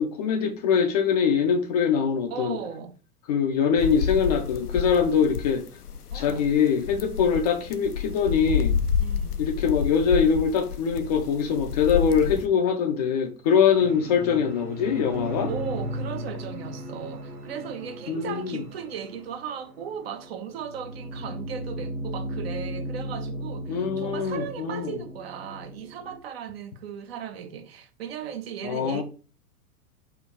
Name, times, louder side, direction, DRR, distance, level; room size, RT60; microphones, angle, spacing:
voice 1, 0.0-2.6 3.3-5.7 6.1-8.8 9.4-15.5 18.1-18.6 23.7-25.0 28.6-29.0, left 6 dB, 30° left, 0.5 m, -23 dB
voice 2, 2.3-3.0 6.1-6.5 9.0-9.4 15.5-29.0, right 7 dB, 45° right, 0.6 m, -37 dB
sound 1, 3.8-12.5, left 7 dB, 85° left, 0.6 m, -29 dB
sound 2, 13.8-18.9, left 1 dB, 15° right, 0.8 m, -40 dB
sound 3, 13.8-26.2, right 1 dB, 75° right, 0.9 m, -37 dB
4.5 x 2.5 x 4.5 m
figure-of-eight pair, 100°, 45 cm